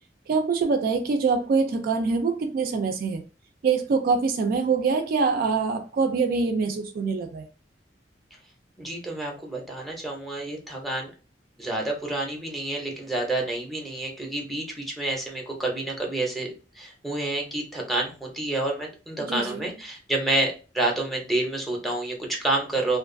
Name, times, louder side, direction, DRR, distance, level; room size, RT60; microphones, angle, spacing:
voice 1, 0.3-3.2 3.6-7.5 19.3-19.6, right 4 dB, 50° right, 0.3 m, -24 dB
voice 2, 8.8-11.1 11.6-16.5 16.7-23.0, right 2 dB, ahead, 0.6 m, -29 dB
2.5 x 2.3 x 2.5 m
head